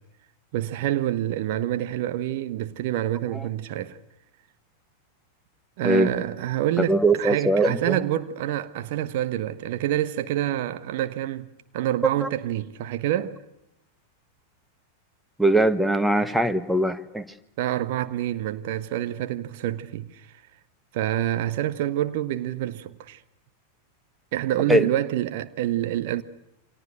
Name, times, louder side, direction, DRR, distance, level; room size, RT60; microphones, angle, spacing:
voice 1, 0.5-4.0 5.8-11.5 11.7-13.4 17.6-20.3 20.9-23.2 24.3-26.2, right 13 dB, 50° right, 1.4 m, -27 dB
voice 2, 6.9-8.0 12.2-12.3 15.4-17.2 24.7-24.9, right 1 dB, 5° right, 1.6 m, -21 dB
29.0 x 25.5 x 6.6 m
figure-of-eight pair, 90°, 0 cm